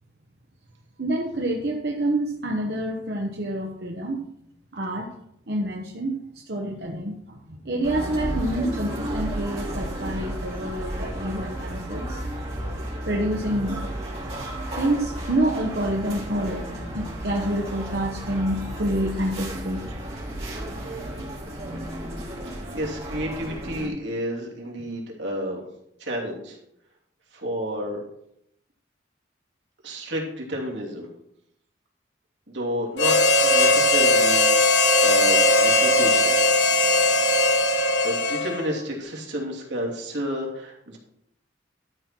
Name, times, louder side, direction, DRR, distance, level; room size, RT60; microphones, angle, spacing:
voice 1, 1.0-4.2 4.7-5.1 5.5-6.2 6.5-12.2 13.1-13.8 14.8-16.7 16.9-19.8, right 1 dB, 60° right, -1 dB, 1.1 m, -27 dB
sound 1, 7.8-23.9, right 1 dB, 35° right, 3.1 m, -33 dB
voice 2, 22.7-25.6 26.0-26.6 27.3-28.0 29.8-31.1 32.5-34.4 35.0-36.4 38.0-41.0, equal, 80° right, -2 dB, 2.8 m, -30 dB
Harmonica, 33.0-38.8, left 2 dB, 70° left, 1.1 m, -19 dB
12.5 x 4.5 x 6.0 m, 0.76 s
head